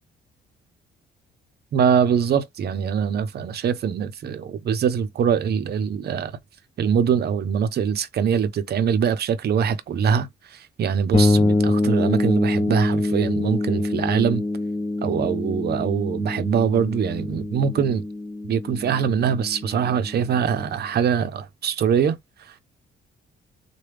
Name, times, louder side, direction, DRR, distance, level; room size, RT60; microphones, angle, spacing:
voice 1, 1.7-6.4 6.8-14.4 15.0-18.0 18.5-22.6, right 7 dB, 55° right, 0.6 m, -23 dB
sound 1, 11.1-20.7, left 2 dB, 25° left, 0.9 m, -25 dB
3.2 x 2.2 x 3.1 m
cardioid pair, 90°, 20 cm